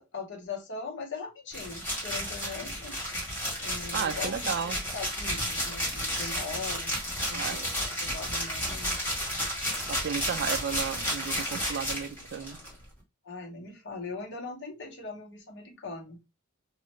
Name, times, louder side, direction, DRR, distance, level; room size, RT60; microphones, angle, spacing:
voice 1, 0.0-3.0 3.6-8.9 13.2-16.2, left 4 dB, 55° left, 0.9 m, -40 dB
sound 1, 1.5-12.7, equal, 10° left, 1.5 m, -32 dB
voice 2, 3.9-4.8 7.3-7.7 9.9-12.6, right 7 dB, 50° right, 0.3 m, -33 dB
3.0 x 2.3 x 3.0 m
head